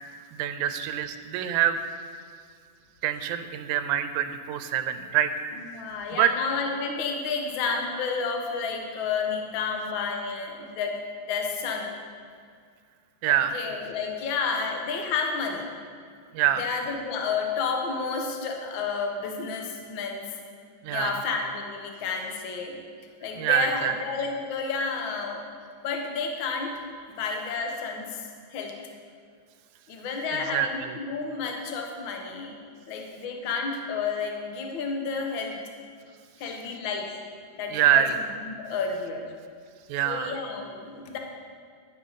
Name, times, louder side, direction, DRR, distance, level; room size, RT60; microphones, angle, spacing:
voice 1, 0.3-1.8 3.0-5.3 5.7-6.3 13.2-13.6 16.3-16.6 20.8-21.2 23.4-23.9 30.3-31.0 37.7-38.2 39.9-40.4, right 10 dB, 80° right, 10 dB, 2.0 m, -25 dB
voice 2, 5.7-11.0 11.2-11.9 13.3-15.7 16.6-20.3 20.9-22.8 23.2-25.5 25.8-26.7 27.1-28.2 28.5-28.7 29.9-32.6 32.9-35.6 36.4-37.2 37.5-38.0 38.4-39.3 40.0-41.2, left 5 dB, 55° left, 2 dB, 1.5 m, -31 dB
11.0 x 11.0 x 4.1 m, 2.1 s
omnidirectional pair, 3.5 m